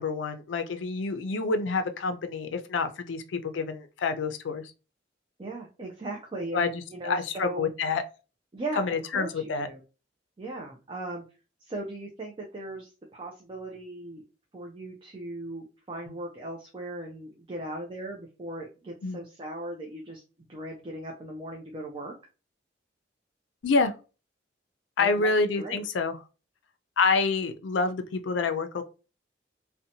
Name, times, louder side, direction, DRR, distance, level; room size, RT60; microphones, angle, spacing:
voice 1, 0.0-4.6 6.5-8.0 8.8-9.7 19.0-19.2 23.6-23.9 25.0-26.2 27.0-28.8, left 4 dB, 90° left, 0.4 m, -27 dB
voice 2, 5.4-7.7 8.5-9.8 10.4-11.2 11.6-14.2 14.5-20.2 20.5-22.2 25.0-25.3 25.6-25.8, right 2 dB, 25° right, 0.4 m, -38 dB
2.7 x 2.1 x 2.6 m
head